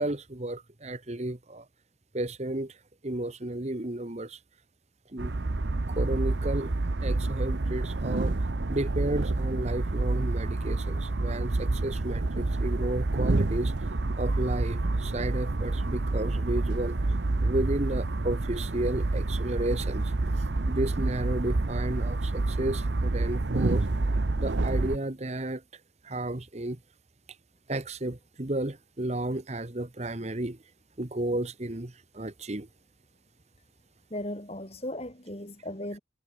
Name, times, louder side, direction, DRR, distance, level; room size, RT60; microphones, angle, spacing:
voice 1, 0.0-1.6 2.1-2.8 3.0-4.4 5.1-5.3 5.9-6.7 7.0-8.4 8.7-13.7 14.2-17.0 17.4-20.1 20.7-23.8 24.4-25.6 26.0-26.8 27.7-30.6 31.0-32.7, right 1 dB, 35° right, 1.3 m, -32 dB
sound 1, 5.2-25.0, right 2 dB, 70° right, 0.9 m, -28 dB
voice 2, 34.1-36.0, left 1 dB, 35° left, 5.8 m, -36 dB
head